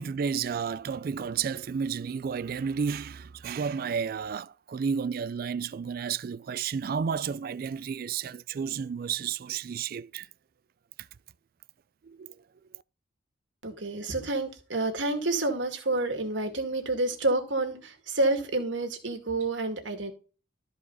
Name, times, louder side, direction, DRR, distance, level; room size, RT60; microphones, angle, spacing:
voice 1, 0.0-10.3 12.0-12.4, right 6 dB, 50° right, 0.3 m, -32 dB
voice 2, 13.6-20.1, right 2 dB, 90° right, 2.2 m, -29 dB
13.5 x 4.9 x 4.0 m
head